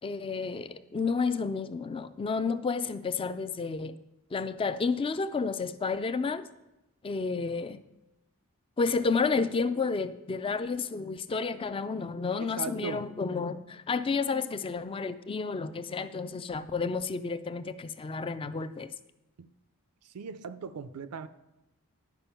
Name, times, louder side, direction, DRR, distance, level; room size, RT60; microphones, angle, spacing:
voice 1, 0.0-4.0 4.3-6.5 7.0-7.8 8.8-18.9, left 4 dB, 25° left, 12 dB, 0.3 m, -31 dB
voice 2, 12.4-13.1 19.4-19.5 20.1-21.3, right 5 dB, 85° right, 13 dB, 0.5 m, -38 dB
10.5 x 5.2 x 5.6 m, 0.95 s
head